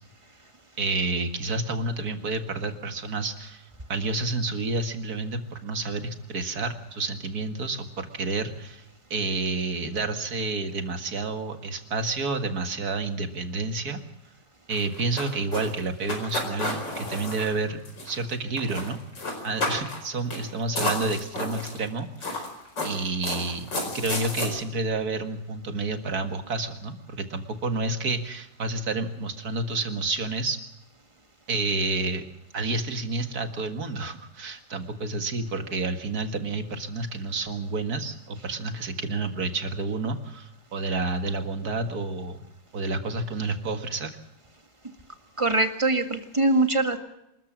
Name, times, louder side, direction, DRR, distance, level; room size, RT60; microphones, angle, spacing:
voice 1, 0.8-8.8 9.1-14.0 14.7-19.0 19.4-22.5 22.8-23.7 23.9-30.6 31.5-32.2 32.5-42.4 42.7-44.2, right 3 dB, 60° right, 7 dB, 2.2 m, -29 dB
sound 1, 14.7-18.3 18.6-18.9 19.2-20.0 20.3-20.4 20.7-21.8 22.2-24.5, left 2 dB, 80° left, 5.4 m, -31 dB
voice 2, 45.4-47.0, right 2 dB, 15° right, 6 dB, 1.8 m, -22 dB
26.5 x 14.0 x 7.5 m, 0.88 s
omnidirectional pair, 1.9 m